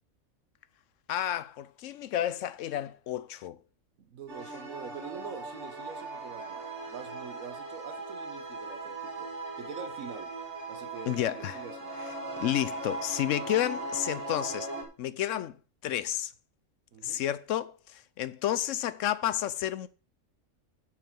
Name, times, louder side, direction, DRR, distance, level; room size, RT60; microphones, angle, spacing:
voice 1, 1.1-3.6 11.1-11.6 12.0-12.1 12.4-14.7 15.0-15.6 15.8-16.3 17.0-19.9, left 12 dB, 75° left, 0.9 m, -31 dB
voice 2, 4.0-9.3 9.6-10.3 10.7-11.9 16.9-17.2, right 7 dB, 90° right, 1.5 m, -45 dB
sound 1, 4.3-14.8, right 2 dB, 55° right, 2.2 m, -39 dB
6.8 x 6.1 x 7.5 m
omnidirectional pair, 1.4 m